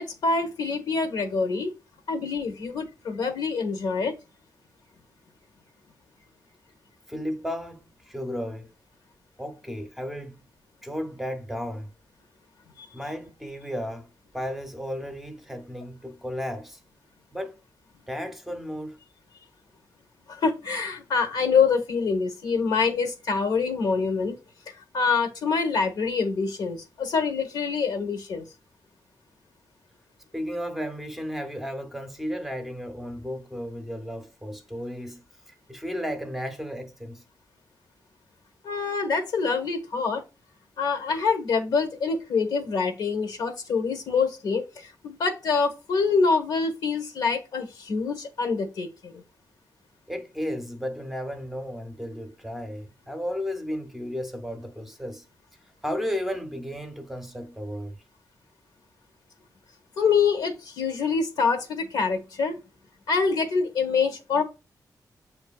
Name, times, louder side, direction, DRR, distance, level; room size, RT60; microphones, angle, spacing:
voice 1, 0.0-1.7 2.1-4.1 12.8-12.9 20.3-24.4 24.9-28.5 38.6-40.2 40.8-49.2 60.0-62.6 63.1-64.4, left 5 dB, 85° left, 1.0 m, -25 dB
voice 2, 7.1-8.7 9.4-10.4 10.8-11.9 12.9-14.1 14.3-16.8 17.3-17.6 18.1-19.0 30.3-35.2 35.5-37.2 50.1-55.3 55.8-58.0, equal, 5° right, 0.6 m, -34 dB
7.7 x 2.6 x 2.3 m
wide cardioid pair, 150°, 7 cm